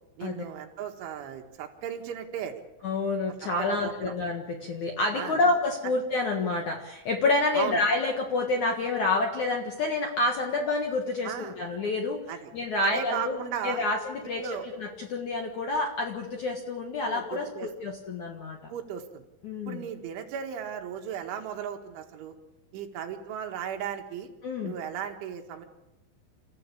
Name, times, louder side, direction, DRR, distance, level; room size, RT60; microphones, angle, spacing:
voice 1, 0.2-2.6 3.4-4.1 5.1-5.4 5.8-5.9 7.5-7.8 11.2-11.6 12.3-12.5 12.8-13.8 14.4-14.7 17.0-17.7 18.7-19.2 19.7-22.4 22.7-24.3 24.6-25.7, right 8 dB, 75° right, 4 dB, 4.1 m, -36 dB
voice 2, 2.8-12.2 12.5-14.5 14.7-18.7 19.4-19.8 24.4-24.8, left 2 dB, 60° left, 3 dB, 2.1 m, -28 dB
29.0 x 14.5 x 8.5 m, 0.97 s
omnidirectional pair, 5.7 m